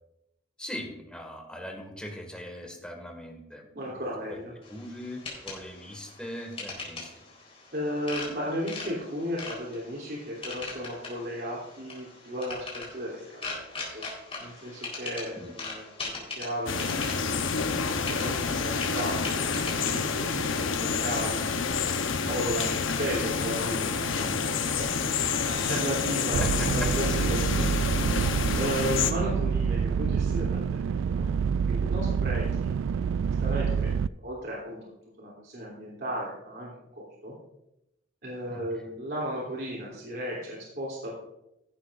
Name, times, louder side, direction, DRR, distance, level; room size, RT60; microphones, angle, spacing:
voice 1, 0.6-4.0 4.3-4.4 4.7-7.1 15.4-15.5 26.4-27.2 38.5-38.6, equal, 5° left, 3 dB, 1.8 m, -40 dB
voice 2, 3.7-4.5 7.7-14.0 14.4-17.4 17.9-21.5 22.2-24.9 25.4-27.6 28.5-31.3 31.7-33.9 34.2-34.9 35.2-37.3 38.2-41.1, equal, 55° right, -5 dB, 3.0 m, -35 dB
sound 1, 4.6-21.4, left 3 dB, 30° left, 3.9 m, -41 dB
sound 2, 16.7-29.1, left 5 dB, 75° left, 0.9 m, -28 dB
sound 3, 26.3-34.1, right 6 dB, 70° right, 0.3 m, -27 dB
14.5 x 11.5 x 2.5 m, 0.87 s
head